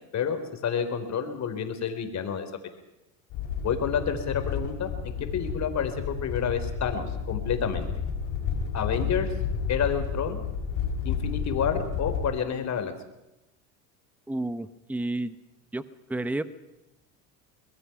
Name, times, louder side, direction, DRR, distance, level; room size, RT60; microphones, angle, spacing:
voice 1, 0.1-2.5 3.6-4.9 5.2-7.9 8.7-9.3 9.7-10.4 11.0-12.9, left 7 dB, 40° left, 8 dB, 3.6 m, -29 dB
sound 1, 3.3-12.3, left 6 dB, 60° left, 5.0 m, -31 dB
voice 2, 14.3-15.4 15.7-15.8 16.1-16.4, right 2 dB, 5° right, 14 dB, 1.0 m, -30 dB
23.5 x 21.0 x 5.9 m, 0.95 s
supercardioid pair, 95°, 42 cm